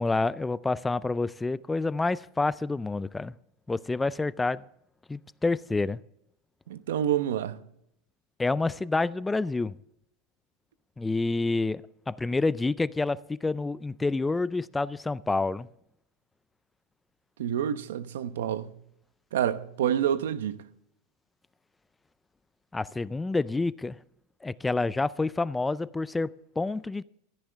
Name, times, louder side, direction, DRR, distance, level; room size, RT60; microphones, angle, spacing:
voice 1, 0.0-3.3 3.7-4.6 5.1-6.0 8.4-9.7 11.0-15.7 22.7-24.0 24.4-27.0, left 3 dB, 10° left, 0.4 m, -28 dB
voice 2, 6.7-7.6 17.4-18.7 19.3-20.6, right 10 dB, 85° right, 1.0 m, -28 dB
15.5 x 14.0 x 3.5 m
supercardioid pair, 135°, 0 cm